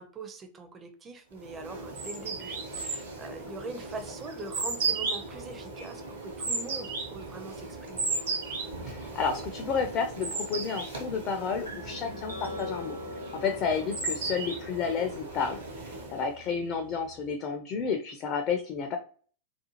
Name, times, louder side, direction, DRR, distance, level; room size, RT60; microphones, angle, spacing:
voice 1, 0.0-8.1 13.4-13.7 15.9-16.1, right 3 dB, 20° right, 6 dB, 0.5 m, -43 dB
sound 1, 1.4-16.4, right 3 dB, 65° right, 0.9 m, -36 dB
voice 2, 8.8-13.0 13.3-15.6 15.8-19.0, left 6 dB, 35° left, 5 dB, 0.4 m, -31 dB
sound 2, 11.6-17.3, left 2 dB, 90° left, 0.7 m, -44 dB
2.4 x 2.3 x 2.8 m, 0.42 s
figure-of-eight pair, 90°, 0 cm